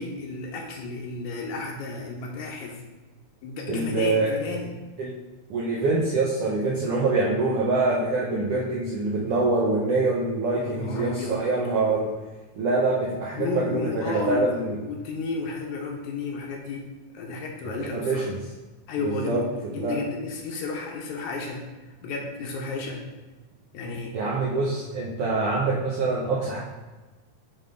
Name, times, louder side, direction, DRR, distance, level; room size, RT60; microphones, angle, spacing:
voice 1, 0.0-2.8 3.4-4.7 10.6-11.4 13.4-16.8 17.1-18.3 18.9-19.5 19.7-21.6 22.0-23.0 23.7-24.2, left 3 dB, 75° left, 1 dB, 2.1 m, -32 dB
voice 2, 3.7-4.3 5.0-5.1 5.5-12.1 12.6-14.7 17.9-18.4 19.0-19.4 19.8-20.0 24.1-26.6, right 3 dB, 70° right, -5 dB, 1.4 m, -25 dB
7.4 x 3.6 x 3.8 m, 1.2 s
omnidirectional pair, 3.6 m